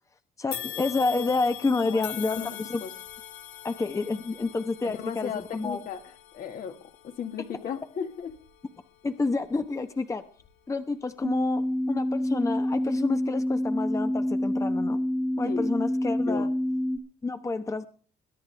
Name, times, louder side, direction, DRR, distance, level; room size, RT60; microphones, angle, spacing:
voice 1, 0.4-2.8 3.6-5.8 9.0-10.2 10.7-15.0 15.4-16.5 17.2-17.8, left 3 dB, 20° left, 8 dB, 1.0 m, -29 dB
sound 1, 0.5-9.8 10.3-10.5 11.5-11.6, left 11 dB, 90° left, 1.8 m, -43 dB
voice 2, 2.4-2.9 4.8-6.0 6.3-8.4 15.4-15.7 16.3-16.5, left 7 dB, 60° left, 6 dB, 1.9 m, -36 dB
sound 2, 11.2-17.0, left 1 dB, 10° right, 1.1 m, -27 dB
22.0 x 10.0 x 3.4 m, 0.41 s
cardioid pair, 110°, 17 cm